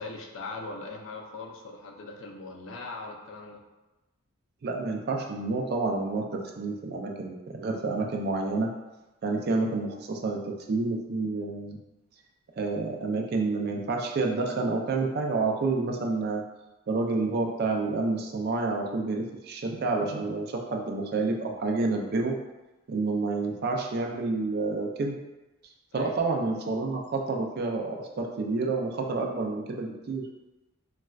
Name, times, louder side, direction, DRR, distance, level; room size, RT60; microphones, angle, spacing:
voice 1, 0.0-3.6 25.9-26.3, left 3 dB, 60° left, 1 dB, 0.4 m, -40 dB
voice 2, 4.6-8.7 9.2-11.8 12.6-16.4 16.9-22.4 22.9-25.2 25.9-30.3, right 3 dB, 45° right, 1 dB, 0.3 m, -29 dB
4.0 x 2.2 x 2.3 m, 1.1 s
head